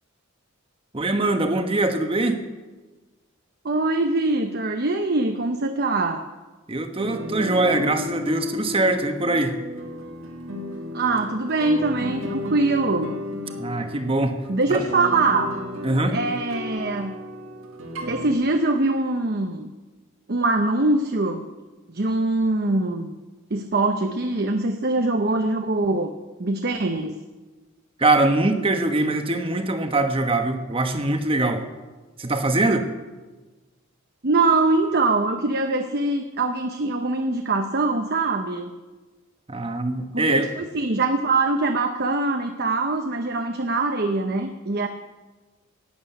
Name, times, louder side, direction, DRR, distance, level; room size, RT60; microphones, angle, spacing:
voice 1, 0.9-2.4 6.7-9.6 13.6-14.4 14.7-14.8 15.8-16.2 28.0-31.6 32.2-32.9 39.5-40.5, right 2 dB, 25° right, 6 dB, 1.2 m, -22 dB
voice 2, 3.6-6.2 10.9-13.1 14.5-15.6 16.1-17.2 18.1-19.7 20.3-21.5 21.9-23.2 23.5-26.1 26.4-27.1 34.2-38.7 40.1-44.9, right 2 dB, 50° right, 5 dB, 0.8 m, -23 dB
sound 1, 7.0-18.3, left 2 dB, 70° right, 1.9 m, -33 dB
11.5 x 8.7 x 8.3 m, 1.2 s
head